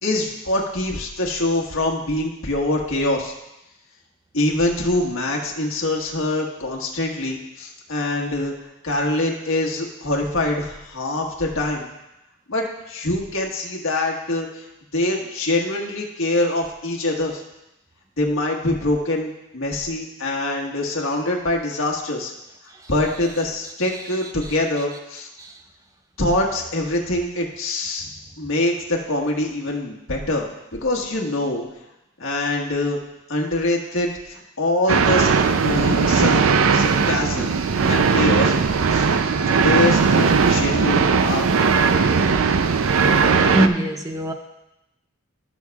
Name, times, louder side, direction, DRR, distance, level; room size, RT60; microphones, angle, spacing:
voice 1, 0.0-3.3 4.3-8.5 8.8-11.9 12.5-14.6 14.9-17.4 18.2-22.3 22.9-25.3 26.2-28.0 28.4-30.5 30.7-31.6 32.2-33.0 33.3-35.3 35.6-36.4 36.7-37.5 37.8-38.5 38.9-39.1 39.6-41.5, left 2 dB, 75° left, -1 dB, 1.5 m, -24 dB
sound 1, 34.9-43.7, right 5 dB, 75° right, 0.5 m, -18 dB
voice 2, 43.5-44.3, right 1 dB, 15° right, 5 dB, 0.6 m, -22 dB
17.0 x 6.4 x 2.4 m, 0.91 s
head